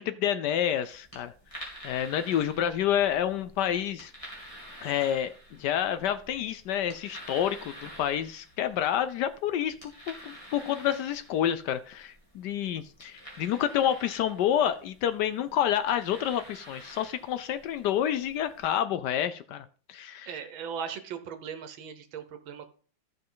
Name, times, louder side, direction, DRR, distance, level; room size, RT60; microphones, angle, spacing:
voice 1, 0.0-1.3 1.8-4.1 4.8-5.3 5.6-20.3, left 10 dB, 70° left, 12 dB, 1.1 m, -28 dB
sound 1, 0.8-18.6, equal, 15° left, 2.8 m, -49 dB
voice 2, 20.3-22.7, right 7 dB, 85° right, 9 dB, 1.8 m, -38 dB
14.0 x 5.3 x 3.8 m, 0.42 s
omnidirectional pair, 2.1 m